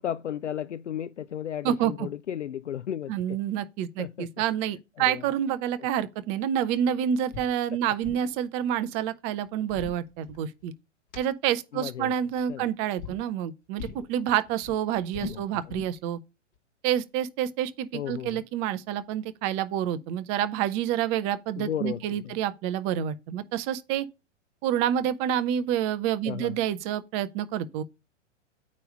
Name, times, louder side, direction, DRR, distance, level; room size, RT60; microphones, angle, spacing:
voice 1, 0.0-3.4 4.0-4.3 5.1-5.2 11.7-12.1 12.5-12.7 15.2-15.6 17.9-18.4 21.6-22.4 26.2-26.6, left 10 dB, 70° left, 0.5 m, -34 dB
voice 2, 1.6-2.1 3.1-10.7 11.2-16.2 16.8-24.1 24.6-27.8, right 10 dB, 20° right, 0.5 m, -28 dB
sound 1, 7.3-7.5 7.8-8.3 9.4-10.7 11.1-11.2 12.3-12.6 13.0-13.2 13.8-14.1 14.4-16.0, left 4 dB, 25° left, 2.0 m, -40 dB
9.1 x 3.1 x 5.2 m
figure-of-eight pair, 110°, 36 cm